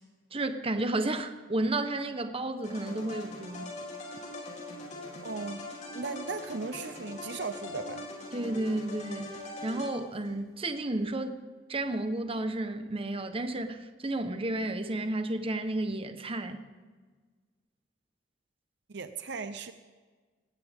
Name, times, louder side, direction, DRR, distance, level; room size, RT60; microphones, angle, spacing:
voice 1, 0.3-3.7 8.3-11.4 11.7-16.6, right 2 dB, 30° right, 8 dB, 1.1 m, -32 dB
sound 1, 2.6-10.4, left 2 dB, 40° left, 4.8 m, -42 dB
voice 2, 5.2-8.1 18.9-19.7, right 4 dB, 65° right, 10 dB, 0.8 m, -37 dB
19.0 x 17.5 x 3.7 m, 1.4 s
head